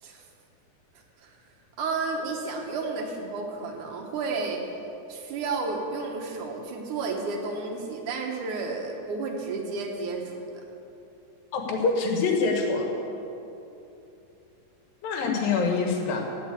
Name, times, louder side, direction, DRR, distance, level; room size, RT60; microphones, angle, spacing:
voice 1, 0.9-1.4 1.8-4.6 5.1-10.6, right 3 dB, 65° right, 1 dB, 2.5 m, -32 dB
voice 2, 11.5-12.9 15.0-16.3, left 4 dB, 80° left, 2 dB, 3.2 m, -25 dB
17.0 x 5.8 x 8.3 m, 2.9 s
omnidirectional pair, 4.0 m